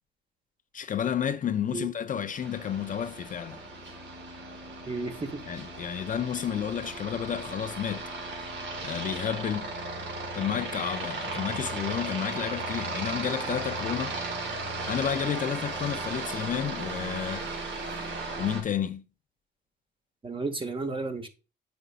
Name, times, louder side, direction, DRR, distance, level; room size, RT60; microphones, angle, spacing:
voice 1, 0.7-3.6 5.5-8.1 8.8-9.7 10.3-14.2 14.9-17.5 18.4-19.0, left 8 dB, 40° left, 0.5 m, -31 dB
Aircraft, 2.3-18.6, right 3 dB, 65° right, 1.9 m, -36 dB
voice 2, 4.9-5.4 20.2-21.3, right 3 dB, 25° right, 1.2 m, -33 dB
7.8 x 5.0 x 2.4 m
cardioid pair, 90°, 20 cm